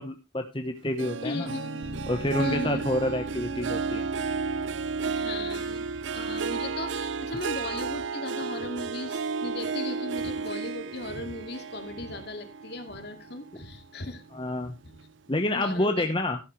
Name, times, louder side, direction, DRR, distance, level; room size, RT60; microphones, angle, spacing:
voice 1, 0.0-1.5 2.1-4.1 13.5-13.6 14.3-14.7 15.3-16.4, left 1 dB, 25° left, 5 dB, 1.0 m, -28 dB
Harp, 1.0-13.7 14.1-14.5 15.0-15.1, right 5 dB, 80° right, 0.5 m, -33 dB
voice 2, 1.2-1.9 2.4-2.8 5.0-5.9 6.1-14.2 15.5-16.1, left 2 dB, 60° left, 6 dB, 2.3 m, -37 dB
Guitar, 1.5-6.7, left 2 dB, 60° right, 5.3 m, -48 dB
Bass guitar, 1.8-8.1, equal, 10° right, 0.9 m, -46 dB
13.0 x 11.0 x 3.2 m, 0.25 s
head